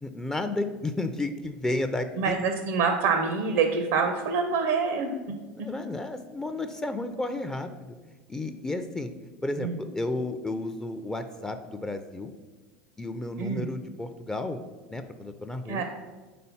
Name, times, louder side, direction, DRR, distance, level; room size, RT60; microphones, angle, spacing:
voice 1, 0.0-2.4 5.6-7.9 8.3-9.1 9.4-12.3 13.0-14.6 14.9-15.8, left 2 dB, 10° left, 8 dB, 0.4 m, -32 dB
voice 2, 2.2-5.1 5.6-5.7 9.6-9.8 13.4-13.7 15.7-15.8, right 5 dB, 75° right, 5 dB, 0.6 m, -26 dB
4.2 x 3.9 x 5.5 m, 1.3 s
hypercardioid pair, 100°, 6 cm